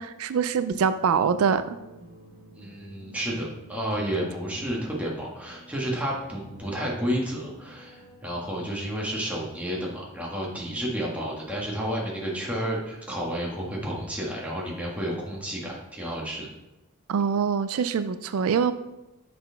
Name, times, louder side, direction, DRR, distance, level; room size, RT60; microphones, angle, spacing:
voice 1, 0.0-1.8 17.1-18.7, right 6 dB, 90° right, 12 dB, 0.4 m, -24 dB
sound 1, 0.7-8.2, right 1 dB, 35° right, 1.9 m, -50 dB
voice 2, 2.5-16.5, equal, 5° right, -4 dB, 1.5 m, -31 dB
6.5 x 4.2 x 4.5 m, 0.99 s
head